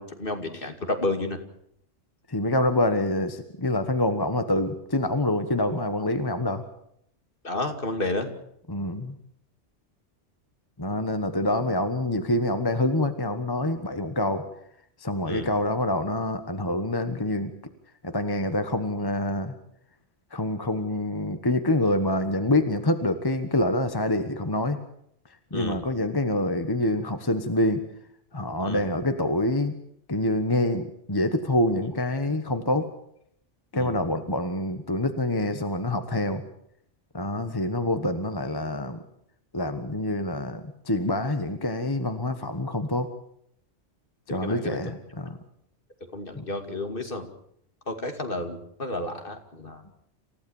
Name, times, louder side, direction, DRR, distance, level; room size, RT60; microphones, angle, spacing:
voice 1, 0.0-1.4 7.4-8.3 15.2-15.5 25.5-25.8 28.6-28.8 33.7-33.9 44.3-44.8 46.1-47.3 47.9-49.8, left 2 dB, 50° left, 6 dB, 2.6 m, -31 dB
voice 2, 2.3-6.6 8.7-9.1 10.8-14.4 15.0-17.5 18.0-19.5 20.3-24.8 25.5-27.8 28.3-29.8 30.1-32.9 33.7-36.4 37.1-39.0 39.5-43.1 44.3-45.4 46.3-46.4, left 1 dB, 20° left, 8 dB, 1.3 m, -26 dB
28.0 x 15.5 x 7.2 m, 0.71 s
omnidirectional pair, 1.2 m